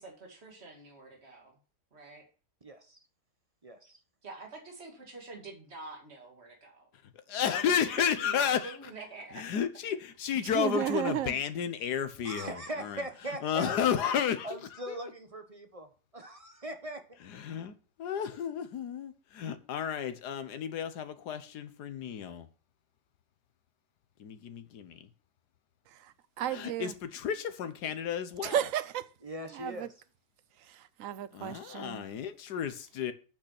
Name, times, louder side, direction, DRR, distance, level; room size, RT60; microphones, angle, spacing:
voice 1, 0.0-1.6 1.9-2.2 4.2-6.9 7.5-9.5 10.8-10.9, right 3 dB, 40° right, 2.7 m, -46 dB
voice 2, 2.6-3.1 3.6-4.0 12.2-13.7 14.4-17.0 29.2-29.9, right 1 dB, 25° right, 1.0 m, -40 dB
voice 3, 7.3-8.8 9.3-13.0 13.4-14.5 14.9-15.1 17.3-22.5 24.2-25.1 26.5-28.6 31.3-33.1, left 8 dB, 75° left, 1.5 m, -32 dB
voice 4, 10.5-11.4 25.9-26.9 28.4-29.1 29.5-29.9 30.6-32.0, right 11 dB, 65° right, 0.9 m, -33 dB
8.9 x 6.5 x 5.9 m
omnidirectional pair, 1.7 m